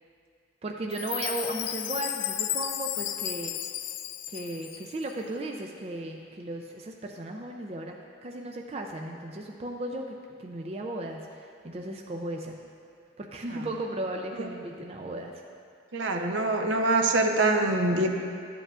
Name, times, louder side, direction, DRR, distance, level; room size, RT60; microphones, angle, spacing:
voice 1, 0.6-3.5 4.3-10.1 10.4-11.2 11.6-12.6 13.2-15.4, right 1 dB, 30° right, 1 dB, 0.4 m, -35 dB
Chime, 0.9-5.1, left 13 dB, 70° left, 0.3 m, -33 dB
voice 2, 15.9-18.1, right 2 dB, 75° right, 4 dB, 0.6 m, -24 dB
12.0 x 7.8 x 2.4 m, 2.4 s
head